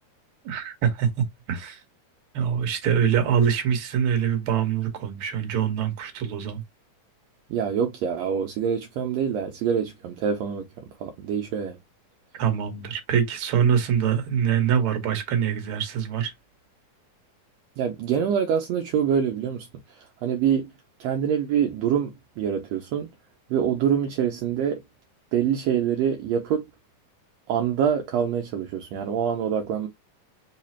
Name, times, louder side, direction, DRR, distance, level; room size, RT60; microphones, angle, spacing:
voice 1, 0.4-1.8 2.3-6.6 12.4-16.3, right 8 dB, 55° right, 1.8 m, -24 dB
voice 2, 7.5-11.8 17.8-20.7 21.0-23.1 23.5-24.8 25.3-26.7 27.5-29.9, right 8 dB, 75° right, 1.7 m, -25 dB
4.9 x 2.3 x 4.3 m
omnidirectional pair, 3.5 m